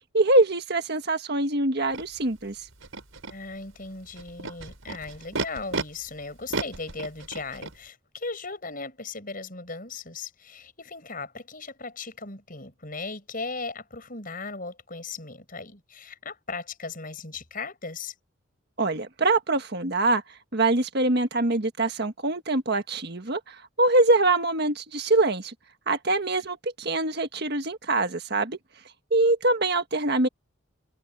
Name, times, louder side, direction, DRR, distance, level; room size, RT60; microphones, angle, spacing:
voice 1, 0.1-2.7 18.8-20.2 20.5-25.5 25.9-28.6 29.1-30.3, right 2 dB, 55° right, 1.6 m, -24 dB
Animal, 1.9-2.0 2.8-3.3 4.2-5.8 6.5-7.7, right 3 dB, 80° right, 5.3 m, -32 dB
voice 2, 3.3-18.1, left 3 dB, 45° left, 6.5 m, -37 dB
head